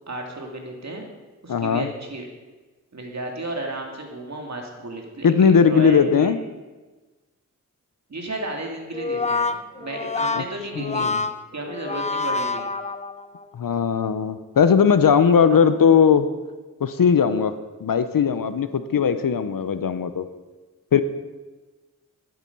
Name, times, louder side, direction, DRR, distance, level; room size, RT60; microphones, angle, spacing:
voice 1, 0.1-1.1 1.4-2.3 2.9-6.3 8.1-11.1 11.5-12.7 15.5-15.6, right 2 dB, 55° right, 1 dB, 2.5 m, -33 dB
voice 2, 1.5-1.9 5.2-6.4 10.3-10.4 10.8-11.2 13.5-16.3 16.8-17.5 17.8-20.2 20.9-21.0, left 6 dB, 85° left, 11 dB, 0.8 m, -18 dB
Brass instrument, 8.9-13.4, left 3 dB, 20° left, 0.6 m, -27 dB
12.0 x 10.5 x 5.4 m, 1.2 s
wide cardioid pair, 80°, 33 cm